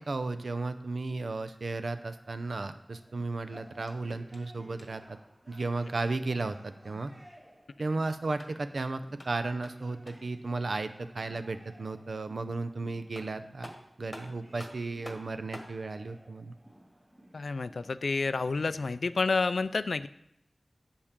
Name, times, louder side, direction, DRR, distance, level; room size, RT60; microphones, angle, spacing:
voice 1, 0.1-5.2 5.5-7.1 7.8-13.7 14.0-16.5, right 3 dB, 75° right, 10 dB, 0.6 m, -34 dB
sound 1, 1.4-18.3, equal, 25° right, 2.2 m, -57 dB
sound 2, 3.8-5.1 8.2-10.4 12.7-12.8 13.1-15.8, left 1 dB, 20° left, 1.5 m, -49 dB
voice 2, 17.3-20.1, left 4 dB, 90° left, 15 dB, 0.3 m, -29 dB
9.7 x 7.1 x 3.7 m, 0.82 s
wide cardioid pair, 65°, 0 cm